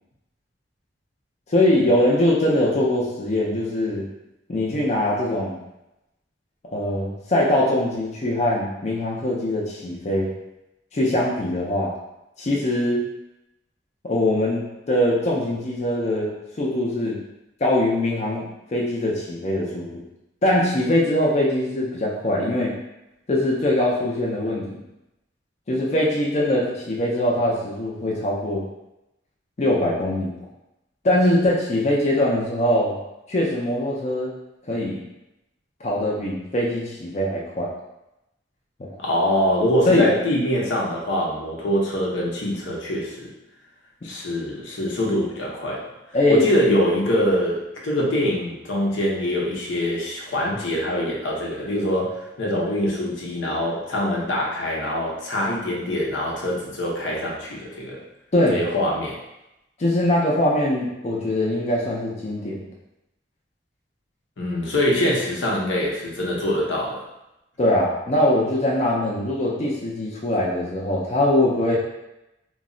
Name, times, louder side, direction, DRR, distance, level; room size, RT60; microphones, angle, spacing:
voice 1, 1.5-4.1 4.5-5.6 6.7-10.3 10.9-11.9 12.4-13.0 14.0-17.2 17.6-20.0 20.4-22.7 23.3-24.8 25.7-28.6 29.6-30.4 31.0-33.0 33.3-34.3 34.7-35.0 35.8-37.7 38.8-39.0 39.9-40.1 46.1-46.4 58.3-58.6 59.8-62.7 67.6-71.8, left 1 dB, 35° left, -4 dB, 0.4 m, -22 dB
voice 2, 39.0-43.3 44.0-45.9 46.3-58.0 58.5-59.2 64.4-67.0, equal, 85° left, -3 dB, 0.7 m, -24 dB
2.3 x 2.0 x 3.6 m, 0.91 s
head